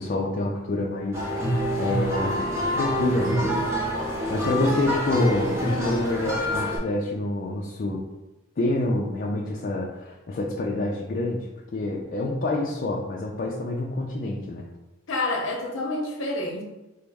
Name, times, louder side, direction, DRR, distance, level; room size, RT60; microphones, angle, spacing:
voice 1, 0.0-3.7 4.3-8.0 8.6-14.7, left 2 dB, 45° left, -3 dB, 0.4 m, -27 dB
sound 1, 1.1-6.8, equal, 15° right, 0.7 m, -26 dB
voice 2, 15.1-16.6, left 2 dB, 65° left, 1 dB, 0.8 m, -28 dB
4.3 x 2.0 x 3.4 m, 1.0 s
head